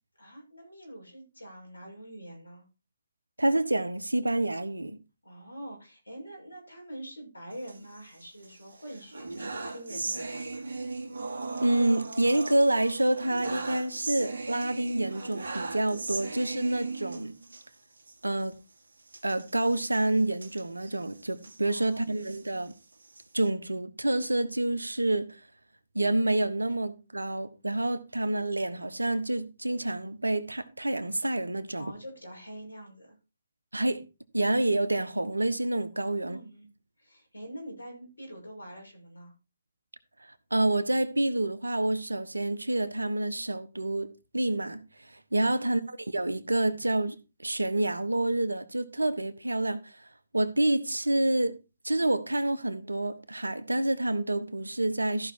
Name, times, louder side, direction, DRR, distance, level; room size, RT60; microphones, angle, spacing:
voice 1, 0.2-2.7 5.2-10.7 21.6-22.0 31.8-33.2 35.9-36.7 37.0-39.3, equal, 85° left, 6.6 m, -45 dB
voice 2, 3.4-5.0 11.6-17.3 18.2-18.5 19.2-22.7 23.3-25.4 25.9-31.9 33.7-34.0 34.3-36.4 40.2-50.1 50.3-51.5 51.8-55.3, right 1 dB, 85° right, 1.1 m, -28 dB
sound 1, 7.5-8.5 8.8-17.6 18.0-18.1 18.4-18.5 19.1-21.6 22.1-23.5, right 3 dB, 70° right, 2.1 m, -38 dB
14.0 x 5.8 x 4.4 m
figure-of-eight pair, 135°, 0 cm